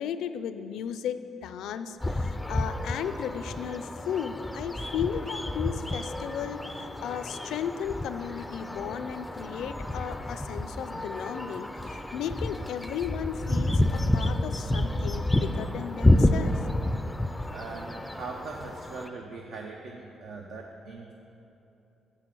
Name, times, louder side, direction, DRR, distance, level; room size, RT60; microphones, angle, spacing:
voice 1, 0.0-16.7, left 8 dB, 80° left, 11 dB, 0.4 m, -35 dB
sound 1, 2.0-19.1, left 1 dB, 10° left, 0.4 m, -29 dB
voice 2, 17.5-21.1, right 4 dB, 70° right, 1 dB, 0.7 m, -40 dB
7.4 x 6.2 x 7.6 m, 2.9 s
cardioid pair, 90°, 0 cm